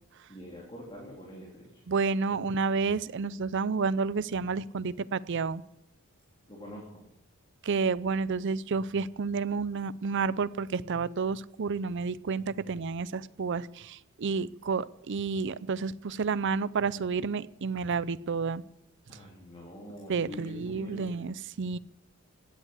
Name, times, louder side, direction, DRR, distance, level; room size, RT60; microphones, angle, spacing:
voice 1, 0.3-1.8 6.5-7.0 19.1-21.3, equal, 25° left, -3 dB, 3.4 m, -45 dB
voice 2, 1.9-5.6 7.6-18.6 20.1-21.8, right 4 dB, 55° right, 17 dB, 0.5 m, -30 dB
16.5 x 10.0 x 8.2 m, 0.86 s
head